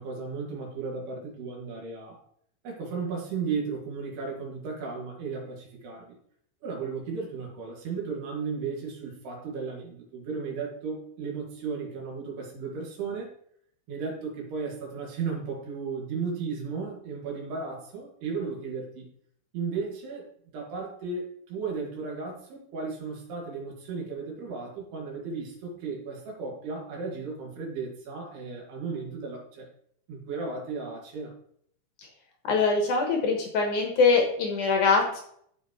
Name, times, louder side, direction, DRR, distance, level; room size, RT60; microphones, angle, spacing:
voice 1, 0.0-2.2 2.6-6.2 6.6-13.3 13.9-19.1 19.5-20.3 20.5-29.7 30.1-31.3, right 5 dB, 70° right, -1 dB, 3.9 m, -35 dB
voice 2, 32.4-35.2, left 4 dB, 65° left, 2 dB, 2.1 m, -23 dB
14.5 x 5.1 x 3.1 m, 0.66 s
omnidirectional pair, 5.0 m